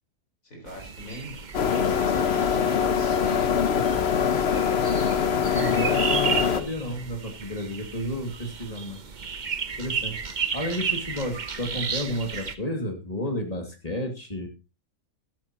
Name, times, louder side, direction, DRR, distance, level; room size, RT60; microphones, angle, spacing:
voice 1, 0.4-4.1, equal, 70° left, 1 dB, 4.9 m, -42 dB
sound 1, 0.7-12.5, right 6 dB, 40° right, 0.9 m, -34 dB
sound 2, 1.5-6.6, left 7 dB, 50° left, 1.1 m, -23 dB
voice 2, 5.5-9.0 9.8-10.2 10.5-14.5, equal, 25° left, 3 dB, 2.4 m, -32 dB
13.5 x 13.5 x 2.9 m, 0.29 s
omnidirectional pair, 1.5 m